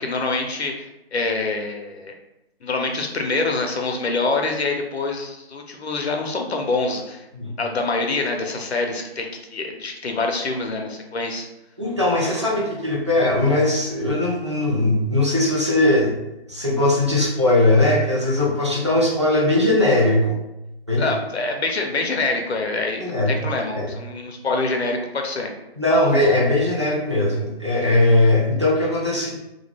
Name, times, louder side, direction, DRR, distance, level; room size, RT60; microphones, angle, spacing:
voice 1, 0.0-2.1 2.6-7.3 7.6-11.5 21.0-25.5, left 3 dB, 80° left, 2 dB, 0.7 m, -25 dB
voice 2, 11.8-16.1 16.5-20.3 20.9-21.1 23.0-23.3 23.8-23.9 25.8-29.4, left 1 dB, 30° right, -5 dB, 0.4 m, -19 dB
2.3 x 2.1 x 3.3 m, 0.93 s
hypercardioid pair, 175°, 32 cm